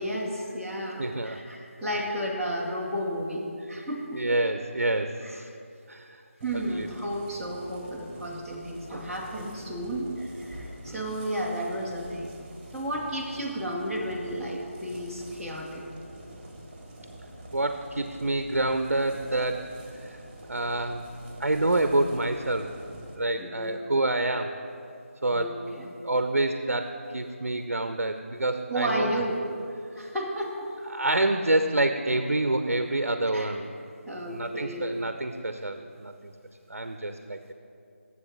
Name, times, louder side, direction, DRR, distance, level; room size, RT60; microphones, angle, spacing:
voice 1, 0.0-4.2 5.2-5.4 6.4-12.3 12.7-15.8 23.4-23.8 25.3-25.9 28.7-29.4 29.9-30.7 33.3-33.5 34.1-34.8, right 1 dB, ahead, -9 dB, 0.4 m, -32 dB
voice 2, 1.0-1.4 3.8-3.9 4.1-5.5 5.9-6.2 6.7-6.9 10.8-11.0 17.5-19.7 20.0-20.2 20.5-21.1 21.4-22.8 23.2-24.5 25.2-25.6 26.0-29.2 30.9-33.7 34.3-36.3 36.7-37.5, right 2 dB, 80° right, 8 dB, 0.6 m, -27 dB
sound 1, 6.4-23.2, right 1 dB, 20° right, 1.1 m, -46 dB
7.2 x 6.2 x 7.2 m, 2.4 s
figure-of-eight pair, 160°, 8 cm